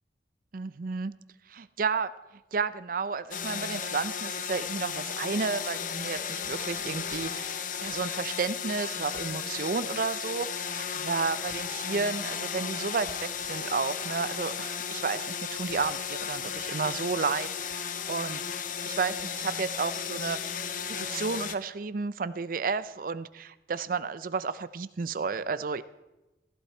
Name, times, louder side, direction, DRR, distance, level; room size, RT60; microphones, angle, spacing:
voice 1, 0.5-1.1 1.5-2.1 2.5-20.6 20.9-25.8, right 5 dB, 50° right, 15 dB, 0.5 m, -32 dB
sound 1, 3.3-21.6, left 7 dB, 45° left, 0.8 m, -35 dB
16.5 x 14.5 x 4.4 m, 1.0 s
head